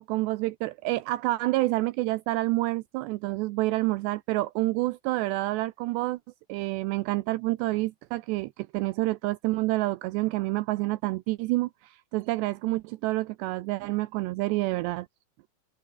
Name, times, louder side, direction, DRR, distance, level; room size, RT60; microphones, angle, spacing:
voice 1, 0.0-6.2 6.5-15.1, right 19 dB, 85° right, 2.4 m, -28 dB
omnidirectional pair, 5.6 m